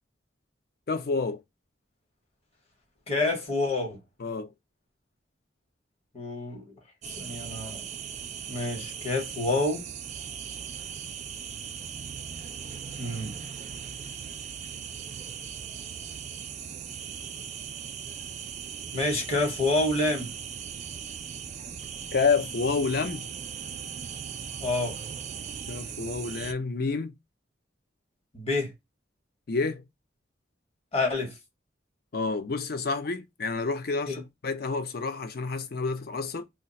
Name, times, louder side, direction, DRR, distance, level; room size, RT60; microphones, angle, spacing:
voice 1, 0.9-1.4 4.2-4.5 22.1-23.3 25.7-27.1 29.5-29.8 32.1-36.4, left 4 dB, 55° left, 0.5 m, -29 dB
voice 2, 3.1-4.0 6.1-6.7 7.1-7.8 8.5-9.8 13.0-13.3 18.9-20.3 24.6-25.0 28.3-28.7 30.9-31.4 34.1-34.2, left 2 dB, 35° left, 1.0 m, -28 dB
sound 1, 7.0-26.5, right 8 dB, 40° right, 0.3 m, -38 dB
2.4 x 2.2 x 3.9 m
head